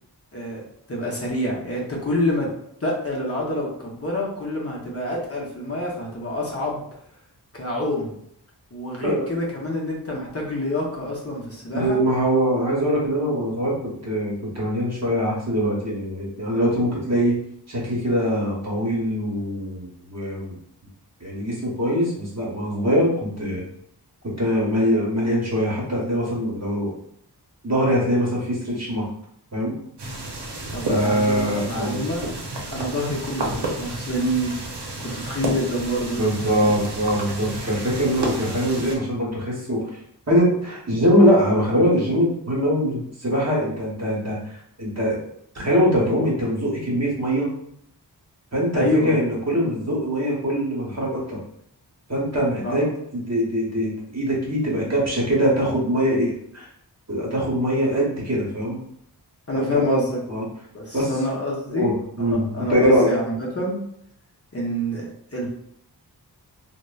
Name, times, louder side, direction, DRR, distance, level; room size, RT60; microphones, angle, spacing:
voice 1, 0.9-2.5 2.8-6.8 7.5-8.1 8.7-12.0 30.7-32.3 32.7-34.6 35.0-36.7 48.7-49.1 52.6-52.8 59.5-60.2 60.7-63.8 64.5-65.5, left 1 dB, 35° left, -3 dB, 0.6 m, -27 dB
voice 2, 11.7-13.8 14.0-17.4 17.7-20.6 21.2-23.6 24.4-26.9 27.6-29.1 29.5-29.8 30.9-32.0 36.1-40.0 40.3-45.2 45.5-47.5 48.5-51.4 52.1-56.7 57.1-58.8 59.5-60.0 60.3-60.5 60.9-61.1 61.7-63.1, equal, 40° right, -4 dB, 1.0 m, -22 dB
sound 1, 30.0-39.0, right 1 dB, 75° right, 0.7 m, -31 dB
2.9 x 2.1 x 2.3 m, 0.72 s
wide cardioid pair, 70°, 40 cm